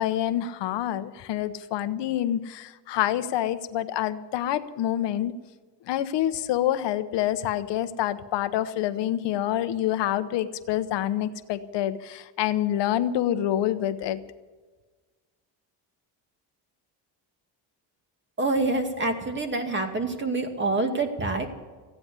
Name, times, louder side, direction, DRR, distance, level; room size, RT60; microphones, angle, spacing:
voice 1, 0.0-5.3 5.9-14.2, left 12 dB, 75° left, 12 dB, 1.0 m, -27 dB
voice 2, 18.4-21.5, right 2 dB, 25° right, 5 dB, 2.3 m, -26 dB
15.0 x 9.6 x 9.9 m, 1.3 s
cardioid pair, 125°, 42 cm